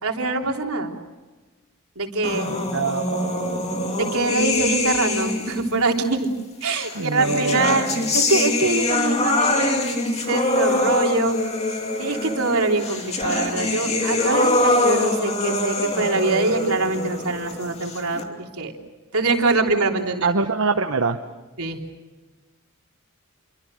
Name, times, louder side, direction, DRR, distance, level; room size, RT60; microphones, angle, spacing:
voice 1, 0.0-0.9 2.0-2.5 4.0-6.3 6.6-10.0 10.3-11.4 12.0-18.7 19.1-20.3 21.6-21.8, right 3 dB, 80° right, 1 dB, 3.4 m, -23 dB
sound 1, 2.2-5.7 6.7-18.2, left 2 dB, 30° left, 2.7 m, -24 dB
voice 2, 2.4-3.9 4.2-4.3 6.9-8.1 20.2-21.2, right 4 dB, 65° right, 6 dB, 1.1 m, -25 dB
28.5 x 24.0 x 6.5 m, 1.2 s
head